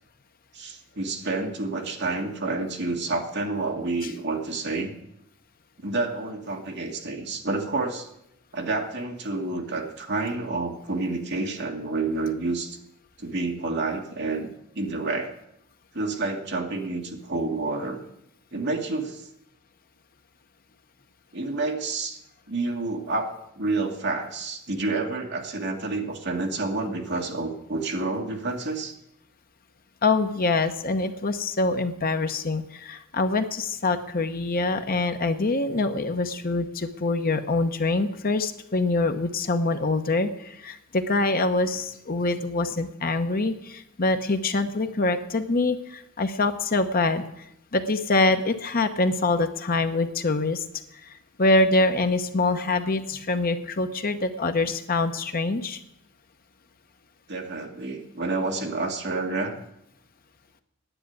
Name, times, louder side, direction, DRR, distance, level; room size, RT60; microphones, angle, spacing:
voice 1, 0.5-4.9 5.8-8.1 8.5-12.8 13.2-14.5 14.8-15.3 15.9-18.0 18.5-19.3 21.3-22.2 22.5-28.9 57.3-59.6, right 3 dB, 50° right, 2 dB, 1.8 m, -29 dB
voice 2, 30.0-47.2 47.7-50.6 51.4-55.8, left 2 dB, 40° left, 8 dB, 0.9 m, -25 dB
10.0 x 8.4 x 9.3 m, 0.80 s
head